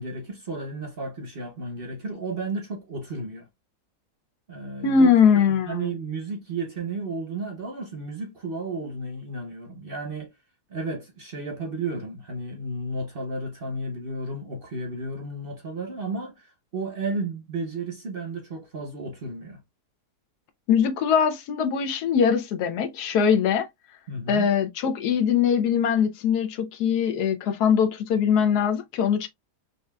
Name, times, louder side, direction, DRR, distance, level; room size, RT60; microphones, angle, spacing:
voice 1, 0.0-3.5 4.5-5.1 5.6-10.3 10.7-19.6 24.1-24.5, right 2 dB, 45° right, 0.8 m, -33 dB
voice 2, 4.8-5.9 20.7-23.7 24.3-29.3, left 7 dB, 75° left, 1.2 m, -22 dB
5.3 x 2.4 x 2.2 m
omnidirectional pair, 1.7 m